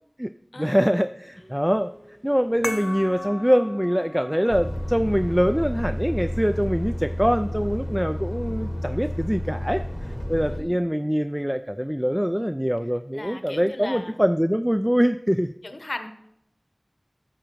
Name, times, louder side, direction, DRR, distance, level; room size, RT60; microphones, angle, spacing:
voice 1, 0.6-1.9 2.2-15.5, equal, 5° right, 10 dB, 0.3 m, -24 dB
sound 1, 1.3-6.9, equal, 70° right, 3.6 m, -54 dB
sound 2, 2.6-7.7, left 1 dB, 40° left, 0.6 m, -39 dB
Truck, 4.5-10.6, equal, 10° left, 1.4 m, -30 dB
voice 2, 10.5-10.9 13.1-14.2 15.6-16.1, left 2 dB, 85° left, 7 dB, 0.8 m, -37 dB
11.5 x 7.4 x 3.1 m, 0.77 s
wide cardioid pair, 45°, 0 cm